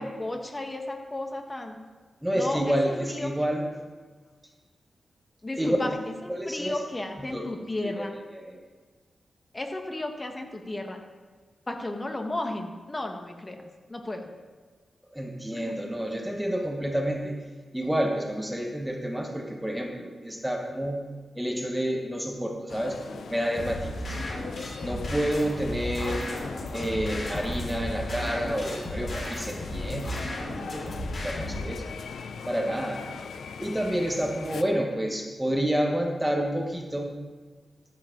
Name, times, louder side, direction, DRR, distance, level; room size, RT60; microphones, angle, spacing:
voice 1, 0.0-1.8 2.3-3.3 5.4-6.0 6.4-8.2 9.5-11.0 11.7-13.6 13.9-14.3 15.5-15.7, left 2 dB, 25° left, 3 dB, 1.4 m, -34 dB
voice 2, 2.2-3.7 5.6-5.8 6.3-6.8 7.2-7.5 7.8-8.6 15.1-17.5 17.7-21.0 21.3-24.2 24.8-26.3 26.7-30.9 31.2-31.9 32.5-33.1 33.6-37.1, equal, 5° right, 2 dB, 1.1 m, -29 dB
sound 1, 22.7-34.6, left 5 dB, 80° left, 0.5 m, -40 dB
sound 2, 23.5-31.6, left 1 dB, 50° left, 3.6 m, -34 dB
14.0 x 7.7 x 3.8 m, 1.5 s
wide cardioid pair, 90°, 0 cm